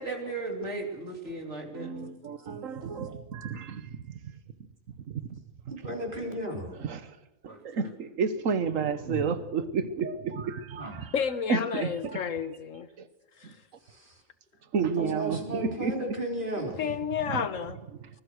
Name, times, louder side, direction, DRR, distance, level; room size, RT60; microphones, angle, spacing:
voice 1, 0.0-1.9 7.5-7.7 9.0-9.3, right 2 dB, 65° right, 3.7 m, -36 dB
voice 2, 1.7-4.0 5.1-5.4 5.7-5.8 6.2-6.3 6.8-7.2 7.4-11.1 11.5-11.9 13.0-13.1 13.4-13.5 14.7-16.0 17.3-17.4, right 5 dB, 85° right, 1.6 m, -31 dB
voice 3, 5.7-6.7 10.8-11.0 13.8-14.2 14.8-16.8, right 1 dB, 40° right, 4.3 m, -35 dB
voice 4, 11.1-12.9 13.4-13.6 16.6-17.8, left 7 dB, 80° left, 1.5 m, -31 dB
24.5 x 20.5 x 6.4 m
omnidirectional pair, 1.3 m